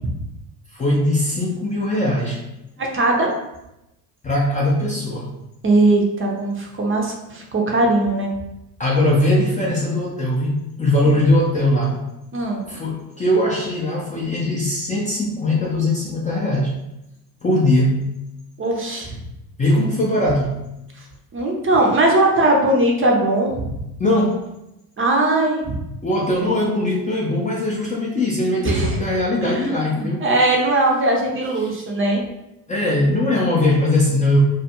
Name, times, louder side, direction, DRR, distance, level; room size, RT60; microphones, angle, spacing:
voice 1, 0.7-2.4 4.2-5.3 8.8-12.0 12.7-16.8 17.4-18.0 19.6-20.6 24.0-24.5 26.0-30.3 31.6-31.7 32.7-34.4, left 1 dB, 15° left, -4 dB, 0.4 m, -20 dB
voice 2, 2.8-3.3 5.6-8.3 11.0-11.1 12.3-12.6 18.6-19.2 21.3-23.7 25.0-25.8 28.6-29.0 29.4-32.2, right 2 dB, 25° right, 0 dB, 0.6 m, -19 dB
2.3 x 2.2 x 2.9 m, 0.90 s
hypercardioid pair, 60°, 47 cm